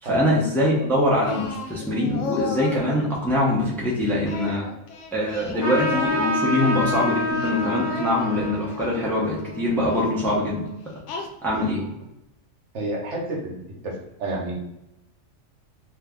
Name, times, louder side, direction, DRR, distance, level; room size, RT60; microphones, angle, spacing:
voice 1, 0.0-4.6 5.1-10.6 11.4-11.8, left 1 dB, ahead, -5 dB, 0.6 m, -23 dB
Singing, 1.2-2.9 4.3-6.8 7.3-9.1 9.9-10.1 11.1-11.7, left 4 dB, 75° left, 0.9 m, -34 dB
Trumpet, 5.6-10.6, left 2 dB, 45° left, 0.9 m, -28 dB
voice 2, 12.7-13.6 13.8-13.9 14.2-14.6, right 2 dB, 70° right, -2 dB, 1.2 m, -29 dB
2.9 x 2.6 x 3.5 m, 0.88 s
omnidirectional pair, 1.3 m